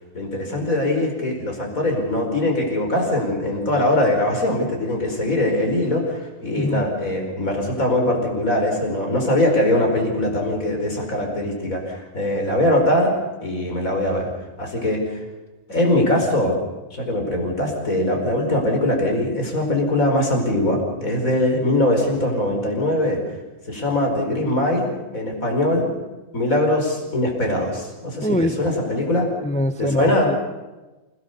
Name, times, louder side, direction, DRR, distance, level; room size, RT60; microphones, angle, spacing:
voice 1, 0.1-13.1 13.4-14.3 14.6-15.2 15.7-16.6 16.9-23.2 23.7-25.9 26.3-29.3 29.8-30.3, left 1 dB, 85° left, 2 dB, 5.4 m, -21 dB
voice 2, 28.2-28.6 29.4-30.4, left 1 dB, 5° left, 10 dB, 0.7 m, -23 dB
28.5 x 18.0 x 6.9 m, 1.1 s
omnidirectional pair, 1.4 m